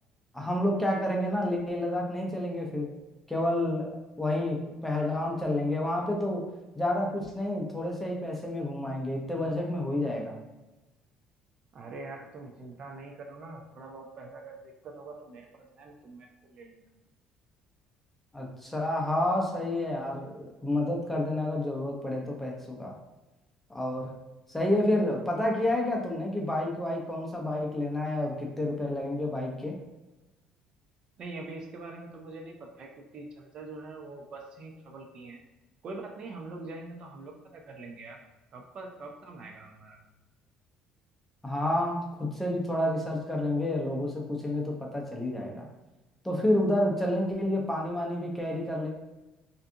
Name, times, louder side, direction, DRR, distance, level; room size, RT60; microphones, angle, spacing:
voice 1, 0.3-2.9 3.3-6.5 6.8-10.4 18.3-23.0 23.7-24.1 24.5-29.7 41.4-45.7 46.2-48.9, left 1 dB, 5° left, -1 dB, 0.5 m, -29 dB
voice 2, 11.7-16.9 31.2-35.4 35.8-38.2 38.5-40.0, right 3 dB, 50° right, 2 dB, 0.4 m, -44 dB
2.5 x 2.3 x 2.7 m, 1.1 s
cardioid pair, 115°, 2 cm